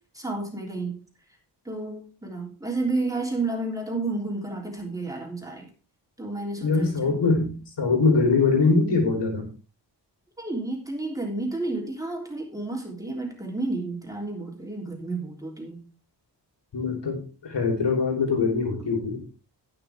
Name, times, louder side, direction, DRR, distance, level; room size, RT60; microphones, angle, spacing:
voice 1, 0.1-1.0 1.6-5.7 6.2-7.1 10.4-15.8, right 2 dB, 10° right, 0 dB, 3.3 m, -31 dB
voice 2, 6.6-9.5 16.7-19.2, left 4 dB, 75° left, 1 dB, 3.6 m, -23 dB
18.0 x 6.1 x 3.5 m, 0.36 s
wide cardioid pair, 95°, 42 cm